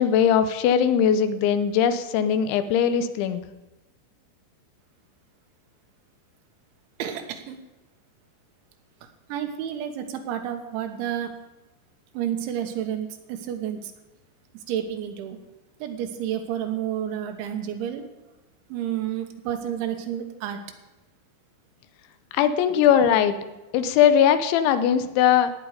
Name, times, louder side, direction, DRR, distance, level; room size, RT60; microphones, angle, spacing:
voice 1, 0.0-3.4 22.3-23.4 23.7-25.5, left 8 dB, 80° left, 11 dB, 3.1 m, -20 dB
voice 2, 7.0-7.6 9.3-11.3 12.1-13.9 14.5-15.4 15.8-18.0 18.7-20.6, right 10 dB, 85° right, 5 dB, 3.5 m, -30 dB
16.0 x 9.5 x 5.0 m, 1.1 s
omnidirectional pair, 5.3 m